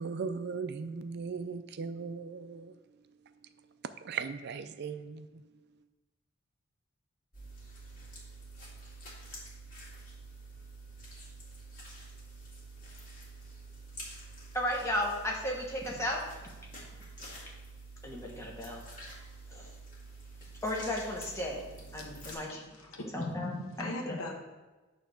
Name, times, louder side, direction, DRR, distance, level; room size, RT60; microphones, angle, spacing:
voice 1, 0.0-3.7 4.0-5.6, right 5 dB, 50° right, 0.4 m, -39 dB
sound 1, 7.3-22.3, right 2 dB, 40° left, 2.3 m, -48 dB
voice 2, 14.5-16.2 18.0-19.0 19.5-19.7 20.6-21.6 21.9-22.6 23.1-24.2, left 1 dB, 15° left, 1.3 m, -34 dB
voice 3, 21.8-24.3, left 2 dB, 85° left, 1.3 m, -42 dB
9.0 x 3.4 x 6.3 m
head